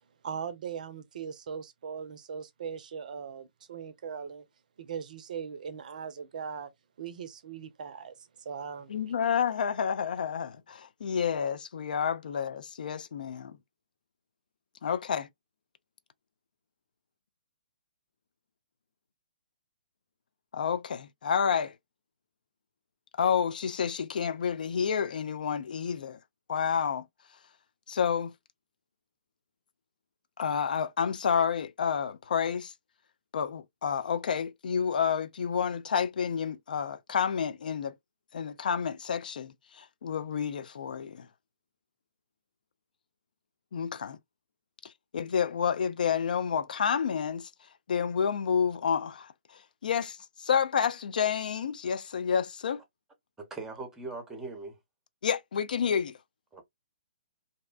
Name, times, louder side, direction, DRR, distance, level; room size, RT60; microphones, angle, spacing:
voice 1, 0.2-4.4 4.8-6.7 7.0-8.9, right 7 dB, 50° right, 0.5 m, -39 dB
voice 2, 8.9-13.6 14.8-15.3 20.5-21.8 23.2-26.2 26.5-27.0 27.9-28.3 30.4-32.7 33.3-38.0 38.3-41.3 43.7-44.2 44.8-47.5 47.9-52.8 55.2-56.2, left 7 dB, 60° left, 0.3 m, -29 dB
voice 3, 53.4-54.8 56.5-56.6, right 3 dB, 10° right, 0.7 m, -40 dB
2.6 x 2.1 x 2.3 m
figure-of-eight pair, 125°, 5 cm